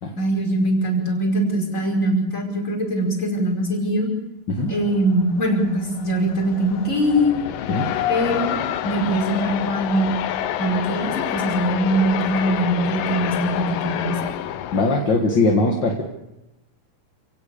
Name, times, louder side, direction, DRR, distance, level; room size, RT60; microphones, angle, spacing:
voice 1, 0.2-4.1 4.7-7.3 8.1-8.6 8.8-10.1 10.6-14.3, right 1 dB, 20° left, 0 dB, 5.4 m, -22 dB
sound 1, 4.7-15.0, left 11 dB, 80° left, 2.6 m, -28 dB
voice 2, 14.7-16.0, left 2 dB, 40° left, 1 dB, 2.0 m, -20 dB
29.0 x 17.5 x 6.9 m, 0.96 s
omnidirectional pair, 3.9 m